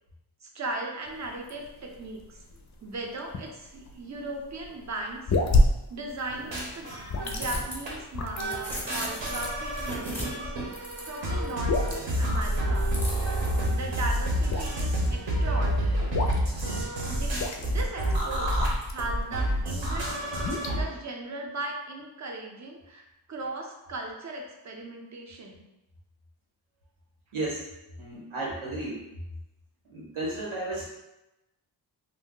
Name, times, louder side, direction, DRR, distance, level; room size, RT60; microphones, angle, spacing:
voice 1, 0.4-2.4 2.8-5.3 5.9-6.9 7.2-10.5 11.0-12.9 13.2-16.1 17.0-23.0 23.3-25.7, right 2 dB, 35° right, 1 dB, 0.6 m, -38 dB
sound 1, 1.0-19.2 19.6-20.8, left 1 dB, 40° left, 0.4 m, -31 dB
sound 2, 6.1-7.8 8.2-11.5 12.9-13.5, left 1 dB, 5° left, 0.7 m, -39 dB
sound 3, 6.3-7.6 7.9-8.0 8.4-20.8, equal, 65° right, 0.9 m, -28 dB
voice 2, 27.3-27.6 28.0-29.0 29.9-30.8, right 2 dB, 90° right, -6 dB, 1.2 m, -33 dB
2.6 x 2.1 x 3.6 m, 0.95 s
wide cardioid pair, 85°, 48 cm